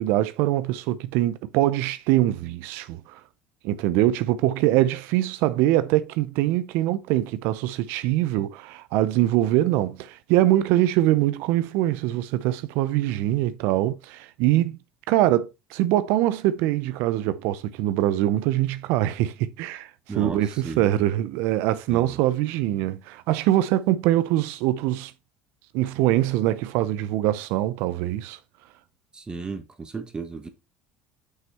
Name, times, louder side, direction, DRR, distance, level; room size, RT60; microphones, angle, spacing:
voice 1, 0.0-3.2 3.6-14.8 15.1-25.1 25.7-28.4, right 14 dB, 75° right, 0.6 m, -23 dB
voice 2, 29.1-30.5, right 4 dB, 20° right, 1.4 m, -34 dB
6.1 x 5.7 x 4.3 m
supercardioid pair, 100°, 4 cm